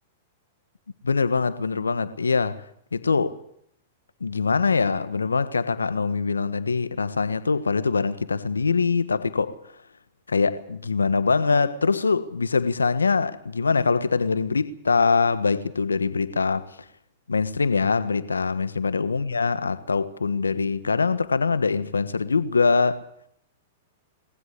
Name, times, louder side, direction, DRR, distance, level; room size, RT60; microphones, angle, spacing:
voice 1, 1.0-2.6 2.9-3.4 4.2-9.5 10.3-16.7 17.3-23.0, left 4 dB, 90° left, 1.4 m, -23 dB
22.5 x 18.5 x 8.5 m
hypercardioid pair, 110°, 0 cm